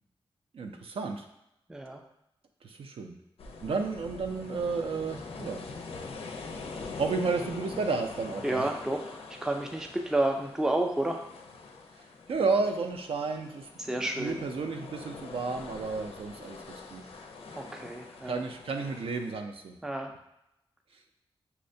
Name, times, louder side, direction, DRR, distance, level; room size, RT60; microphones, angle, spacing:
voice 1, 0.5-1.3 2.6-3.2 3.6-5.7 7.0-8.7 12.0-17.0 18.2-19.8, right 4 dB, 75° right, 4 dB, 0.4 m, -32 dB
voice 2, 1.7-2.0 8.4-11.2 13.8-14.4 17.6-18.4 19.8-20.1, right 1 dB, 5° right, 3 dB, 0.3 m, -30 dB
sound 1, 3.4-19.3, left 4 dB, 80° left, 0.4 m, -44 dB
5.6 x 2.1 x 2.6 m, 0.84 s
wide cardioid pair, 125°, 10 cm